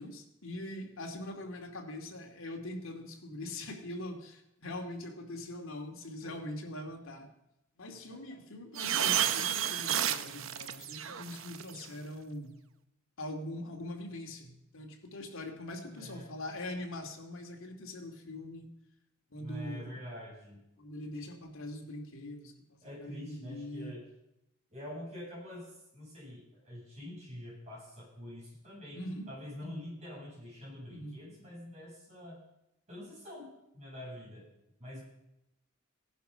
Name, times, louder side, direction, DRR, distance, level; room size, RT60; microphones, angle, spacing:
voice 1, 0.0-7.3 7.8-12.6 13.2-18.7 19.3-20.0 20.8-24.0 28.9-29.3 29.6-29.8 30.9-31.2, left 1 dB, 75° left, 2 dB, 2.5 m, -42 dB
sound 1, 8.8-11.8, right 10 dB, 70° right, 0.8 m, -31 dB
voice 2, 15.8-16.3 19.4-20.6 22.8-24.0 24.7-29.0 29.3-32.4 32.9-33.5 33.7-34.5 34.8-35.0, left 1 dB, 35° right, -5 dB, 7.9 m, -46 dB
17.5 x 11.0 x 5.7 m, 0.87 s
head